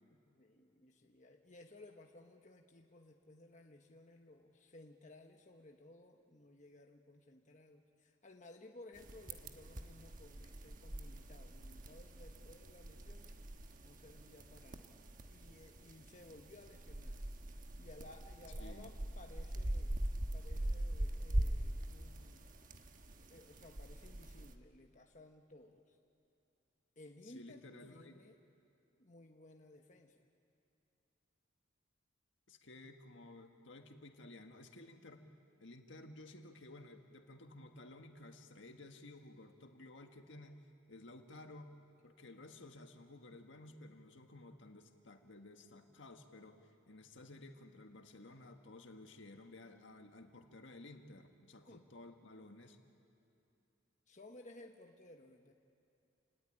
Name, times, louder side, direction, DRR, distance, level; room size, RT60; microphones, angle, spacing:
voice 1, 0.1-13.4 13.8-17.2 17.8-20.0 20.3-22.5 23.3-26.0 27.0-28.4 29.0-30.2 51.7-51.8 54.1-55.5, left 2 dB, 40° left, 3 dB, 1.2 m, -58 dB
sound 1, 9.0-24.5, right 1 dB, 45° right, 1.2 m, -42 dB
voice 2, 18.6-18.9 27.2-28.4 32.5-35.3 35.6-41.8 42.0-52.8, left 2 dB, 70° left, 5 dB, 1.7 m, -55 dB
28.5 x 17.5 x 9.9 m, 2.7 s
head